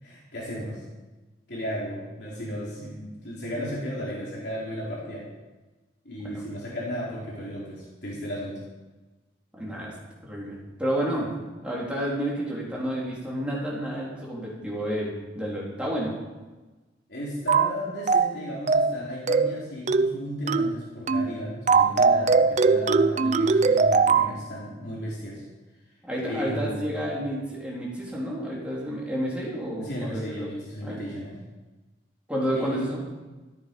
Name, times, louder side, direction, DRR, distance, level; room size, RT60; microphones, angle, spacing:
voice 1, 0.0-0.8 1.5-5.3 6.0-8.6 17.1-25.4 26.3-27.2 29.8-31.4 32.5-33.0, equal, 65° left, -5 dB, 3.9 m, -34 dB
voice 2, 9.6-9.9 10.2-11.3 11.6-16.1 26.0-30.5 30.8-31.0 32.3-33.0, equal, 5° right, -5 dB, 3.7 m, -30 dB
sound 1, 17.5-17.7 18.1-18.4 18.7-19.0 19.3-19.6 19.9-20.2 20.5-20.7 21.1-21.3 21.7-24.3, right 4 dB, 40° right, 0.5 m, -20 dB
13.5 x 13.5 x 5.4 m, 1.2 s
head